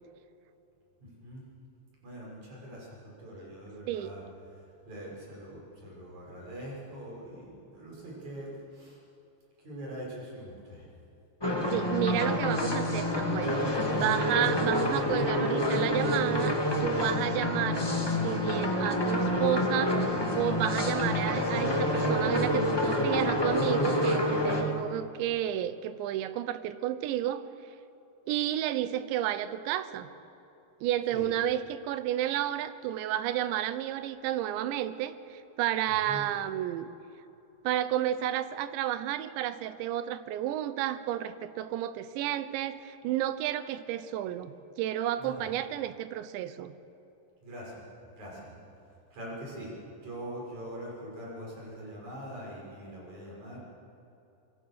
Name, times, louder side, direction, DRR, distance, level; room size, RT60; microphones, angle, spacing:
voice 1, 1.0-1.4 2.0-4.2 4.5-9.0 9.6-10.9 31.1-31.3 35.9-36.2 45.2-45.5 47.4-47.9 48.2-48.5 49.1-49.7 50.0-53.6, equal, 40° right, -4 dB, 7.4 m, -43 dB
sound 1, 11.4-24.6, left 1 dB, 30° left, 0.4 m, -28 dB
voice 2, 11.7-17.8 18.2-20.0 20.3-27.4 28.3-30.1 30.8-36.9 37.6-46.7, right 12 dB, 80° right, 13 dB, 3.1 m, -31 dB
25.0 x 22.5 x 6.6 m, 2.8 s
omnidirectional pair, 5.2 m